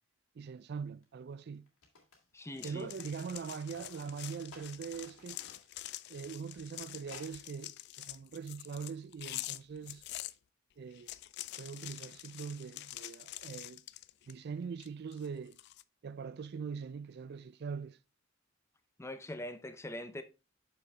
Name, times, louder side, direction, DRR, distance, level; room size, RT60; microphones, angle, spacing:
voice 1, 0.4-1.7 2.6-5.4 6.1-10.1 10.8-11.1 11.6-13.8 14.3-15.6 16.0-18.0, right 6 dB, 50° right, 0.4 m, -42 dB
sound 1, 1.0-1.1 1.7-3.1 3.4-6.1 6.4-6.5 7.0-7.4, left 3 dB, 75° left, 2.4 m, -57 dB
voice 2, 2.3-2.9 19.0-20.2, left 1 dB, 15° left, 0.6 m, -42 dB
sound 2, 2.6-10.3 10.9-14.4 14.8-15.8, left 16 dB, 55° left, 0.3 m, -46 dB
6.8 x 6.1 x 3.3 m
head